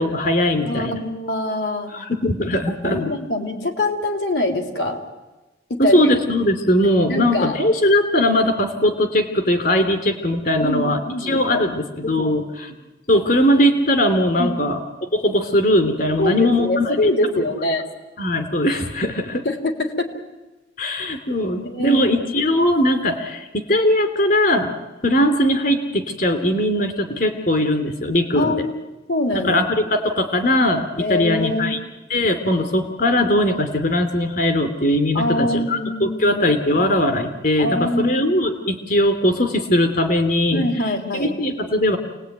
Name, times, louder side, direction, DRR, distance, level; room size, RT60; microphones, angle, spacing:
voice 1, 0.0-1.0 1.9-3.1 5.8-12.7 13.1-14.8 15.1-16.9 18.2-19.4 20.8-24.7 25.0-28.5 29.3-31.8 32.1-40.6 41.1-42.0, left 1 dB, 50° left, 7 dB, 3.0 m, -20 dB
voice 2, 0.7-1.9 2.9-5.0 5.7-6.0 7.1-7.6 10.6-11.6 12.0-12.3 14.4-14.5 16.2-17.8 19.4-20.1 21.6-22.2 28.3-28.7 29.1-29.7 31.0-31.8 35.1-36.4 36.8-37.0 37.6-38.5 40.5-41.3, left 1 dB, 70° left, 4 dB, 3.5 m, -24 dB
28.5 x 19.5 x 9.4 m, 1.1 s
head